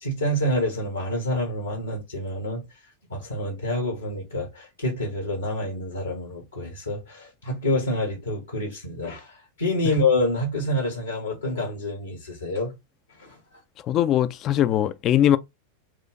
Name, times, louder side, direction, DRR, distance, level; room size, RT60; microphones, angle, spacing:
voice 1, 0.0-2.6 3.1-12.7 13.2-13.4, left 1 dB, 75° left, 1.4 m, -27 dB
voice 2, 13.9-15.4, left 11 dB, 35° left, 0.4 m, -20 dB
4.4 x 2.5 x 3.8 m
figure-of-eight pair, 90°, 0 cm